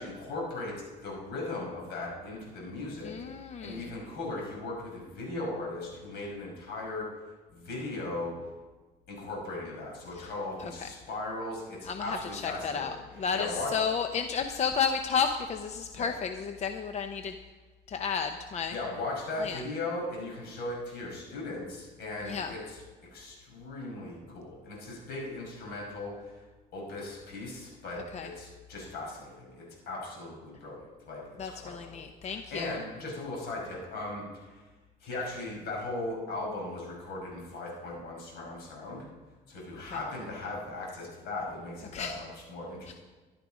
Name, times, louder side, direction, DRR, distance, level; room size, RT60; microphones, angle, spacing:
voice 1, 0.0-3.1 3.6-7.1 7.5-8.4 9.1-13.8 15.9-16.1 18.7-22.8 23.1-26.4 26.7-34.6 35.0-39.1 39.5-42.9, left 2 dB, 75° left, -2 dB, 5.5 m, -38 dB
voice 2, 3.0-3.9 10.1-10.3 10.6-10.9 11.8-17.4 17.9-18.7 19.4-19.6 22.2-22.5 28.1-28.3 31.4-32.8 39.9-40.0 41.9-42.2 42.9-43.0, left 6 dB, 40° left, 7 dB, 0.7 m, -32 dB
13.0 x 11.5 x 5.1 m, 1.3 s
cardioid pair, 110°, 17 cm